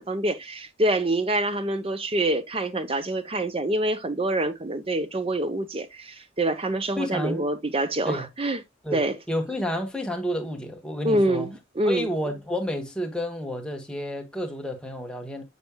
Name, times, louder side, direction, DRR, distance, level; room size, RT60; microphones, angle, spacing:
voice 1, 0.0-8.6 8.9-9.1 11.0-12.1, right 1 dB, 30° right, 0.7 m, -26 dB
voice 2, 7.0-7.4 8.1-8.3 8.8-11.5 11.8-15.4, equal, 5° left, 1.1 m, -30 dB
6.9 x 6.2 x 2.2 m
head